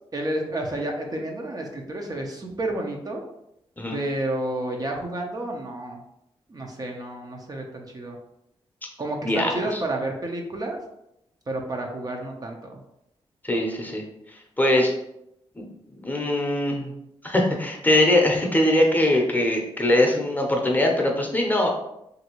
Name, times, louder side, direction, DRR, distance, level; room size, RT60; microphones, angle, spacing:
voice 1, 0.1-3.2 3.9-6.0 6.5-8.2 9.0-10.8 11.5-12.8, right 1 dB, 35° right, 1 dB, 0.6 m, -30 dB
voice 2, 9.2-9.8 13.4-14.0 14.6-14.9 15.6-16.9 17.2-21.7, left 1 dB, 15° left, 0 dB, 0.7 m, -22 dB
2.9 x 2.6 x 2.9 m, 0.81 s
cardioid pair, 55°, 11 cm